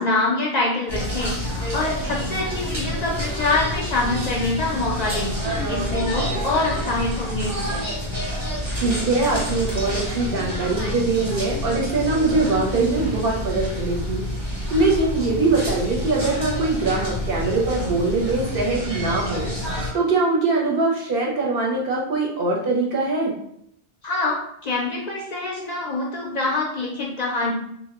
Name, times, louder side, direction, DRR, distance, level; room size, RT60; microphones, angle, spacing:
voice 1, 0.0-7.5 24.0-24.4 24.6-27.5, left 2 dB, 55° left, -3 dB, 0.5 m, -25 dB
sound 1, 0.9-19.9, equal, 30° right, 0.7 m, -28 dB
voice 2, 8.8-23.3, right 3 dB, 65° right, -2 dB, 0.7 m, -22 dB
2.1 x 2.0 x 3.4 m, 0.71 s
omnidirectional pair, 1.1 m